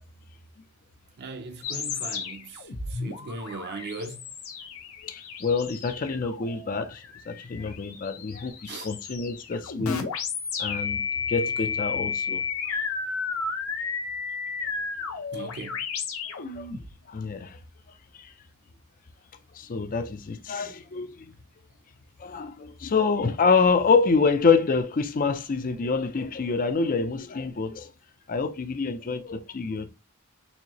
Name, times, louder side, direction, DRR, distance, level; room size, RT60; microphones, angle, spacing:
voice 1, 1.2-4.2 8.6-8.9 11.6-11.7 15.3-15.8, right 3 dB, 50° right, 0.6 m, -38 dB
sound 1, 1.6-16.9, left 5 dB, 65° left, 0.8 m, -33 dB
voice 2, 5.0-10.0 10.6-11.0 11.3-12.8 15.4-15.5 16.3-16.7 17.1-17.6 18.2-18.3 19.6-21.3 22.2-27.9 28.3-29.9, left 4 dB, 40° left, 0.4 m, -26 dB
4.2 x 2.8 x 2.9 m
head